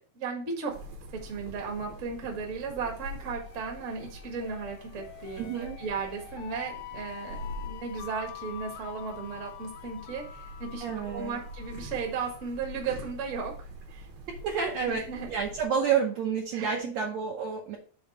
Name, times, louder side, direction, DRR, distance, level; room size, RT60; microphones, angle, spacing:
voice 1, 0.1-0.7 1.2-5.5 5.8-14.1 14.8-15.3 16.5-16.8, right 5 dB, 45° right, 1 dB, 1.0 m, -35 dB
sound 1, 0.7-15.7, equal, 90° right, 3.3 m, -45 dB
sound 2, 3.2-12.9, left 14 dB, 85° left, 2.4 m, -46 dB
voice 2, 5.4-5.8 10.8-11.4 14.4-17.8, right 6 dB, 70° right, 0 dB, 1.7 m, -29 dB
7.1 x 3.8 x 5.3 m, 0.42 s
omnidirectional pair, 4.1 m